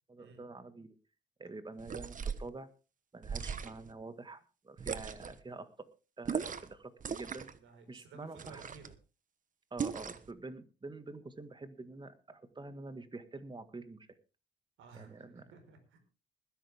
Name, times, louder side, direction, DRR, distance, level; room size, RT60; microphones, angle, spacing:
voice 1, 0.1-1.0 1.4-2.7 3.1-5.9 6.2-7.5 7.9-8.6 9.7-14.1 14.9-15.5, right 3 dB, 25° right, 11 dB, 1.8 m, -47 dB
sound 1, 1.8-2.5 3.2-3.9 4.8-5.4 6.2-6.7 7.0-7.6 8.4-8.9 9.8-10.3, right 6 dB, 40° right, 1.2 m, -38 dB
voice 2, 7.6-8.9 14.8-16.0, right 4 dB, 80° right, 6 dB, 5.0 m, -55 dB
20.0 x 11.0 x 3.6 m, 0.33 s
cardioid pair, 90°, 20 cm